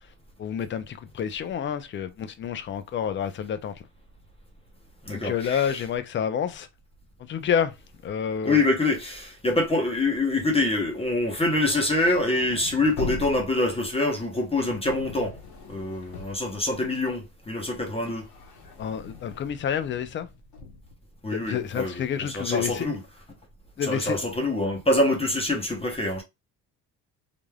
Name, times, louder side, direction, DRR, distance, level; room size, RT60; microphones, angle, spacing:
voice 1, 0.4-3.8 5.1-6.7 7.2-7.7 8.0-8.7 18.8-20.3 21.3-22.9 23.8-24.3, left 8 dB, 30° left, 0.4 m, -29 dB
voice 2, 5.1-5.6 8.4-15.3 15.7-18.3 21.2-21.9 22.3-23.0 23.9-26.2, left 2 dB, 15° left, 0.8 m, -25 dB
sound 1, 11.2-17.3 17.6-20.9, left 4 dB, 65° left, 1.1 m, -41 dB
3.3 x 2.5 x 2.2 m
cardioid pair, 120°, 39 cm